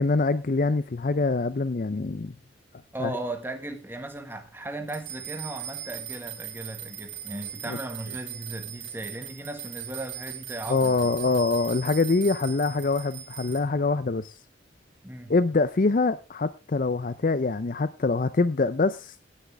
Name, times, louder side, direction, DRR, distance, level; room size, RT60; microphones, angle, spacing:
voice 1, 0.0-2.3 3.0-3.1 7.7-7.8 10.7-14.4 15.3-19.2, left 3 dB, 45° left, 0.5 m, -24 dB
voice 2, 2.9-11.0 15.0-15.3, right 1 dB, 10° right, 1.6 m, -36 dB
sound 1, 4.9-13.6, right 11 dB, 65° right, 3.5 m, -39 dB
16.5 x 10.0 x 3.4 m
head